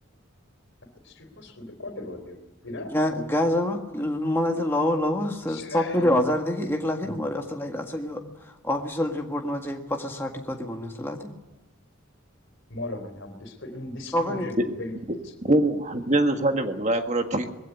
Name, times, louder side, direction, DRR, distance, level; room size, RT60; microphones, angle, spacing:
voice 1, 1.0-3.0 5.5-6.2 7.0-7.2 12.7-14.9 15.2-15.3, left 2 dB, 65° left, 6 dB, 3.8 m, -38 dB
voice 2, 2.9-8.2 8.6-11.3 14.1-14.5, left 1 dB, 10° left, 1 dB, 1.7 m, -26 dB
voice 3, 15.4-17.5, right 1 dB, 35° right, 5 dB, 1.7 m, -23 dB
21.5 x 16.5 x 9.8 m, 1.0 s
head